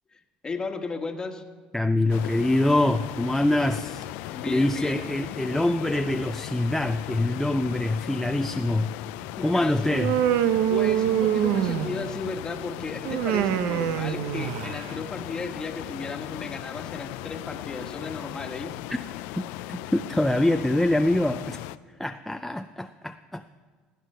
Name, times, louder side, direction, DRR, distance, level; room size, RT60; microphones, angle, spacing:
voice 1, 0.1-1.4 4.3-5.1 9.4-10.0 10.7-18.8, left 3 dB, 25° left, 5 dB, 1.4 m, -35 dB
voice 2, 1.7-4.1 4.5-8.9 9.4-10.1 19.4-19.5 19.9-21.6 22.0-23.4, left 1 dB, 5° left, 6 dB, 0.4 m, -24 dB
sound 1, 2.1-21.8, left 17 dB, 80° left, 0.4 m, -37 dB
Human voice, 9.9-12.2 13.1-14.9, right 11 dB, 75° right, 0.6 m, -25 dB
17.5 x 9.3 x 5.5 m, 1.5 s
supercardioid pair, 105°, 3 cm